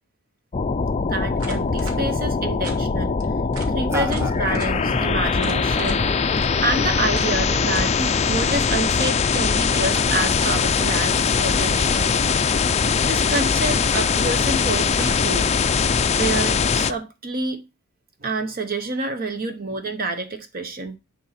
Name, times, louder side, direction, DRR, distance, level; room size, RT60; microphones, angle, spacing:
sound 1, 0.5-16.9, left 5 dB, 30° left, 0.4 m, -21 dB
voice 1, 1.1-3.2 3.5-6.1 6.6-8.0 8.3-12.2 13.0-15.5 16.1-17.6 18.2-21.0, right 2 dB, 40° right, 1.0 m, -28 dB
sound 2, 1.4-2.0 2.6-2.8 3.2-3.3 3.5-3.7 4.1-4.7 5.4-6.0 6.4-6.5 7.2-7.3 7.7-8.0 10.4-10.9 11.8-12.2 12.8-13.6 13.9-14.1 15.0-15.4 16.1-16.5, right 3 dB, 70° right, 2.0 m, -38 dB
sound 3, 3.9-13.8, equal, 10° right, 0.8 m, -36 dB
10.0 x 3.9 x 5.8 m
head